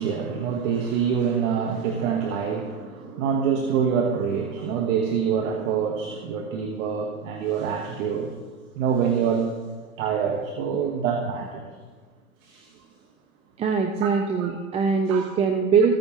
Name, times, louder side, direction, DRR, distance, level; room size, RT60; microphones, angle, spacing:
voice 1, 0.0-8.3 8.8-9.5 10.0-11.6 12.4-12.7 14.0-14.5 15.1-15.3, right 7 dB, 60° right, 3 dB, 1.3 m, -26 dB
voice 2, 13.6-16.0, right 5 dB, 15° right, 5 dB, 0.4 m, -22 dB
15.0 x 9.0 x 2.9 m, 1.4 s
hypercardioid pair, 110°, 43 cm